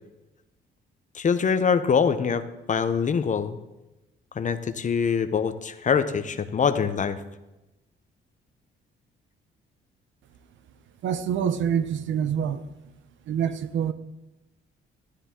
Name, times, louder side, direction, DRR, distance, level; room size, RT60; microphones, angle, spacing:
voice 1, 1.1-2.4 2.7-3.6 4.4-7.2, left 6 dB, 40° left, 11 dB, 0.8 m, -24 dB
voice 2, 11.0-12.6 13.3-13.9, right 8 dB, 70° right, 11 dB, 0.7 m, -26 dB
13.0 x 10.0 x 3.7 m, 1.0 s
cardioid pair, 90°, 20 cm